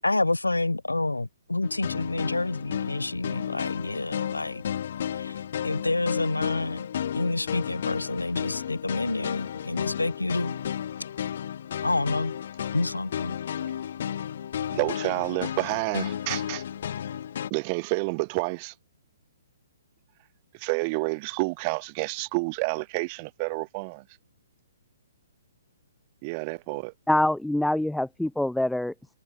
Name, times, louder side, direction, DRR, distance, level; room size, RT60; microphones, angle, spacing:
voice 1, 0.0-4.6 5.1-6.9 7.1-10.6 11.8-12.3 12.7-13.4, left 2 dB, 85° left, 0.6 m, -28 dB
sound 1, 1.6-17.5, left 9 dB, 55° left, 3.8 m, -33 dB
voice 2, 14.7-16.6 17.5-18.7 20.5-24.0 26.2-26.9, right 30 dB, 35° right, 0.8 m, -29 dB
voice 3, 27.1-29.2, left 1 dB, ahead, 0.5 m, -25 dB
figure-of-eight pair, 125°, 0 cm